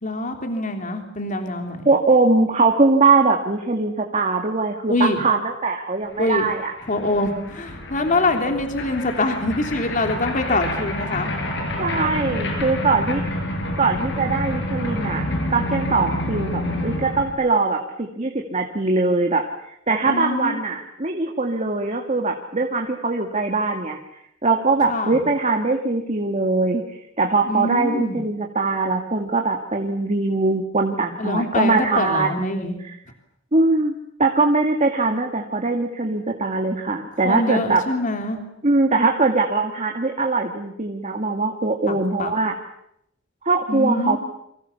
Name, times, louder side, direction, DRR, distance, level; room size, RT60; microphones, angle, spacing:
voice 1, 0.0-1.9 4.9-5.2 6.2-6.5 6.9-11.3 20.1-20.6 24.9-25.3 27.5-28.2 31.2-32.8 37.2-38.4 41.9-42.3 43.7-44.2, left 2 dB, 40° left, 5 dB, 3.4 m, -24 dB
voice 2, 1.9-6.7 11.8-13.2 13.8-15.3 15.5-19.4 19.9-24.0 24.4-26.8 27.2-32.5 32.8-33.0 33.5-33.9 34.2-37.8 38.6-42.6 43.4-44.2, right 3 dB, 35° right, 2 dB, 2.1 m, -21 dB
sound 1, 6.2-6.3 6.4-17.3, left 1 dB, 65° left, 7.3 m, -28 dB
29.0 x 25.0 x 7.1 m, 0.77 s
head